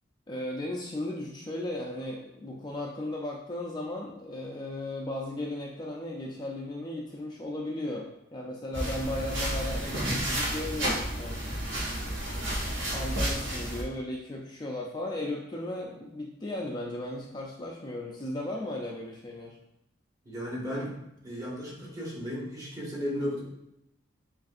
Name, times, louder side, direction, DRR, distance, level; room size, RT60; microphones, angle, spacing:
voice 1, 0.3-11.4 12.9-19.6, left 1 dB, 20° left, -2 dB, 0.4 m, -36 dB
sound 1, 8.7-13.8, right 1 dB, 70° right, 1.4 m, -31 dB
voice 2, 20.2-21.0 21.2-23.4, equal, 20° right, -6 dB, 1.4 m, -34 dB
7.4 x 2.6 x 2.4 m, 0.83 s
head